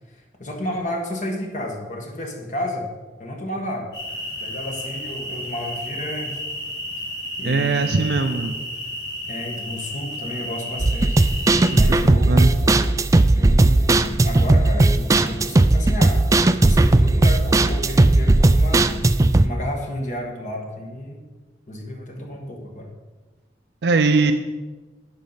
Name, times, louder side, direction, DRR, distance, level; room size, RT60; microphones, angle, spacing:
voice 1, 0.1-2.9 3.2-3.9 4.4-6.4 7.4-8.1 9.3-11.2 11.7-13.0 13.3-18.9 19.4-21.2 21.7-22.9, left 1 dB, 45° left, 1 dB, 1.4 m, -32 dB
sound 1, 3.9-11.8, left 1 dB, 80° left, 3.2 m, -32 dB
voice 2, 7.4-8.5 11.7-12.5 23.8-24.3, right 3 dB, 70° right, 7 dB, 0.5 m, -21 dB
sound 2, 10.8-19.5, right 2 dB, 20° right, 0.3 m, -16 dB
10.5 x 5.3 x 5.7 m, 1.3 s
head